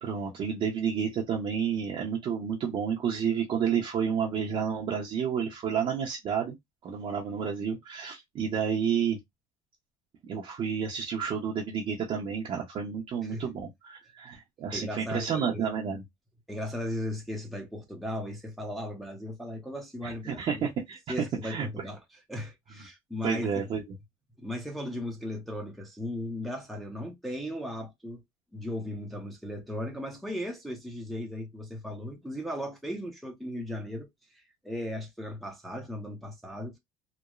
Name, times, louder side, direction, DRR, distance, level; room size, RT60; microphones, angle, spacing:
voice 1, 0.0-6.6 6.8-9.2 10.2-16.0 20.0-21.7 23.2-23.8, right 7 dB, 40° right, 0.7 m, -30 dB
voice 2, 14.7-15.7 16.5-20.7 21.1-22.0 22.3-23.7 24.4-28.2 28.5-34.1 34.3-36.8, left 1 dB, ahead, 0.6 m, -37 dB
3.0 x 2.0 x 2.3 m
cardioid pair, 140°, 14 cm